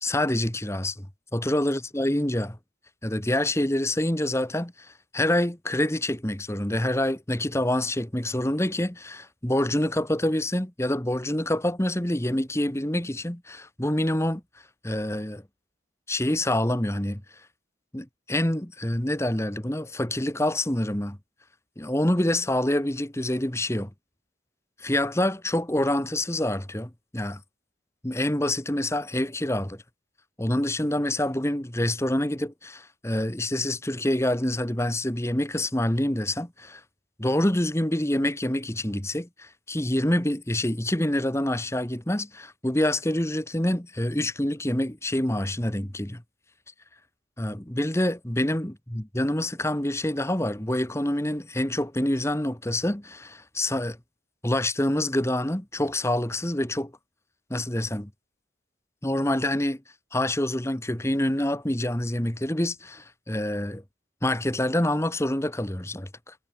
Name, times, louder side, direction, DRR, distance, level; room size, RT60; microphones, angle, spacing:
voice 1, 0.0-1.1 1.3-2.6 3.0-14.4 14.8-15.4 16.1-17.2 17.9-21.2 21.8-23.9 24.8-27.4 28.0-29.8 30.4-36.8 37.2-46.2 47.4-54.0 54.4-56.9 57.5-58.1 59.0-59.8 60.1-63.8 64.2-66.3, left 1 dB, 15° left, 1.4 m, -26 dB
head